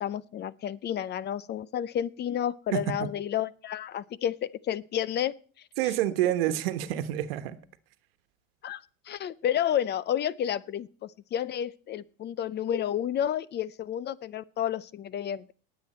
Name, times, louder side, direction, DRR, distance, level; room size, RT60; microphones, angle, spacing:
voice 1, 0.0-5.3 8.6-15.5, left 10 dB, 35° left, 0.6 m, -31 dB
voice 2, 2.7-3.1 5.8-7.6, right 13 dB, 80° right, 1.3 m, -28 dB
19.0 x 7.8 x 4.3 m
supercardioid pair, 100°, 29 cm